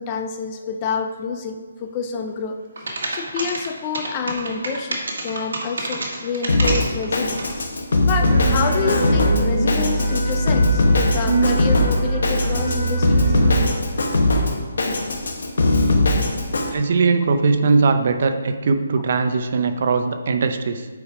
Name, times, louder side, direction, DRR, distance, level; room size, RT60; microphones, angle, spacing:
voice 1, 0.0-7.4 8.1-13.4, left 5 dB, 20° left, 6 dB, 0.3 m, -28 dB
sound 1, 2.8-7.5, right 2 dB, 70° right, 1.7 m, -28 dB
Drum kit, 6.5-16.7, left 2 dB, 65° left, 1.2 m, -20 dB
sound 2, 8.2-13.7, right 2 dB, 20° right, 1.4 m, -22 dB
voice 2, 16.7-20.9, right 4 dB, 40° right, 8 dB, 0.5 m, -20 dB
8.3 x 4.9 x 4.8 m, 1.4 s
hypercardioid pair, 175°, 0 cm